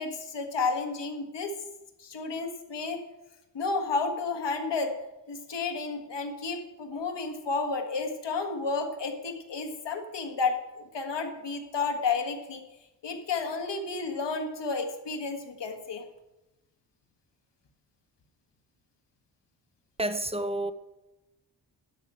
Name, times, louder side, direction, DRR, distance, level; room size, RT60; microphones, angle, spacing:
voice 1, 0.0-1.5 2.0-3.0 3.5-5.0 5.3-12.6 13.0-16.0, left 4 dB, 90° left, 5 dB, 1.6 m, -31 dB
voice 2, 20.0-20.7, right 1 dB, 15° right, 10 dB, 0.9 m, -29 dB
12.5 x 5.5 x 8.8 m, 0.98 s
wide cardioid pair, 80°, 41 cm